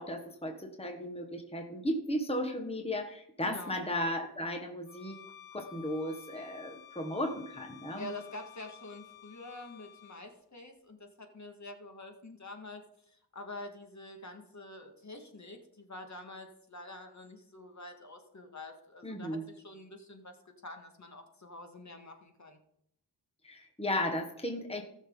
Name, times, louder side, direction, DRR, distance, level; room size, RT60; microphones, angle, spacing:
voice 1, 0.0-5.2 5.5-8.1 19.0-19.4 23.4-24.8, left 1 dB, 15° left, 3 dB, 1.6 m, -35 dB
voice 2, 3.4-3.8 8.0-20.4 20.6-22.6, left 2 dB, 45° left, 4 dB, 2.1 m, -47 dB
Bowed string instrument, 4.8-10.3, left 11 dB, 65° left, 4.5 m, -53 dB
18.0 x 6.5 x 4.0 m, 0.73 s
cardioid pair, 70°, 40 cm